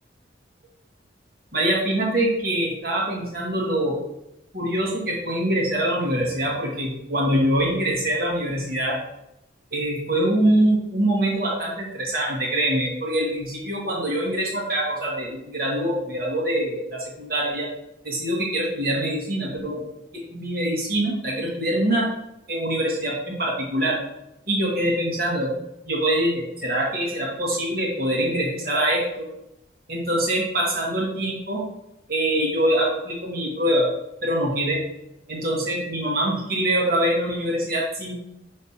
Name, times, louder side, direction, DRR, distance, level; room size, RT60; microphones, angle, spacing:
voice 1, 1.5-4.0 4.5-9.0 9.7-17.7 18.0-19.8 20.1-22.1 22.5-24.0 24.5-25.5 25.8-29.3 29.9-31.6 32.1-33.9 34.2-34.8 35.3-38.1, right 1 dB, 55° right, -3 dB, 1.7 m, -24 dB
5.8 x 5.8 x 2.8 m, 0.85 s
head